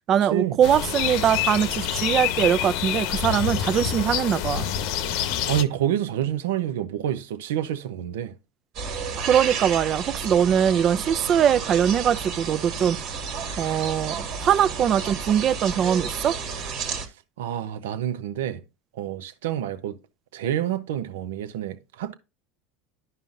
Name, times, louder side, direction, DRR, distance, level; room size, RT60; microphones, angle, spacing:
voice 1, 0.1-4.7 9.2-13.0 13.6-16.4, right 9 dB, 40° right, 0.5 m, -22 dB
sound 1, 0.6-5.6, left 10 dB, 70° left, 0.8 m, -27 dB
voice 2, 5.5-8.3 17.4-18.6 19.0-19.9 20.3-22.1, right 11 dB, 85° right, 0.8 m, -28 dB
sound 2, 8.7-17.1, right 5 dB, 60° right, 1.8 m, -32 dB
11.0 x 5.5 x 2.6 m
supercardioid pair, 105°, 0 cm